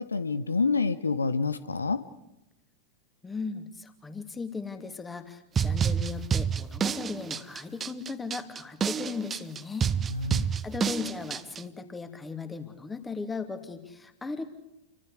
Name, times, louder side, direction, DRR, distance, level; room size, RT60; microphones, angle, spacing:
voice 1, 0.0-2.0 10.1-10.5, left 4 dB, 75° left, 14 dB, 1.0 m, -27 dB
voice 2, 3.2-9.9 10.6-14.5, left 4 dB, 10° left, 8 dB, 2.7 m, -37 dB
sound 1, 5.6-11.6, right 7 dB, 20° right, 0.8 m, -29 dB
29.5 x 24.5 x 5.0 m, 0.92 s
figure-of-eight pair, 90°, 0 cm